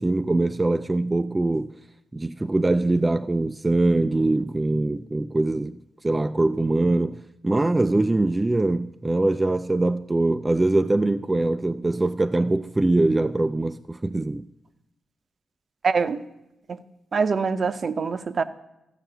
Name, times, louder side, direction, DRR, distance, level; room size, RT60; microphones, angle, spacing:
voice 1, 0.0-1.8 2.1-14.5, right 2 dB, 20° right, 0.3 m, -23 dB
voice 2, 15.8-16.2 16.7-16.8 17.1-18.4, right 5 dB, 50° right, 0.6 m, -24 dB
13.5 x 5.7 x 7.9 m
cardioid pair, 85°, 0 cm